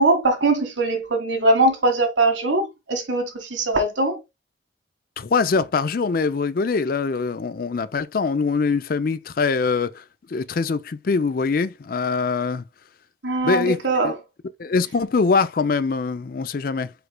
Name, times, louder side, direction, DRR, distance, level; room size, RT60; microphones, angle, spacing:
voice 1, 0.0-4.2 13.2-14.1, right 2 dB, 80° right, 1.6 m, -21 dB
voice 2, 5.2-10.0 10.3-12.6 13.4-13.8 14.0-14.1 14.6-16.9, left 4 dB, 50° left, 0.4 m, -23 dB
5.0 x 4.6 x 2.2 m
head